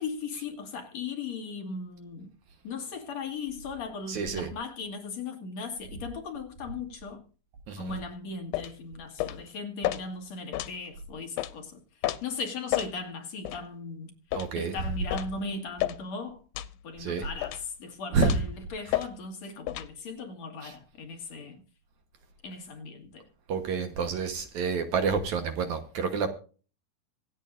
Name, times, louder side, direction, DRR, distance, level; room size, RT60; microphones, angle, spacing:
voice 1, 0.0-2.3 2.6-7.2 7.8-11.8 12.2-16.4 16.8-21.6 22.4-23.3, left 4 dB, 55° left, 2.8 m, -38 dB
voice 2, 4.1-4.5 7.7-7.9 14.3-14.8 17.0-17.3 18.1-18.3 20.6-20.7 23.5-26.3, right 5 dB, 65° right, 2.3 m, -29 dB
sound 1, 8.5-8.7 9.2-9.4 9.8-10.0 10.5-10.7 11.4-11.5 12.0-12.2 12.7-12.9 13.4-13.6 14.3-14.5 15.1-15.3 15.8-16.0 16.5-16.7 17.4-17.7 18.2-18.5 18.9-19.1 19.7-19.9, left 15 dB, 90° left, 2.6 m, -30 dB
25.5 x 8.5 x 2.5 m
omnidirectional pair, 4.1 m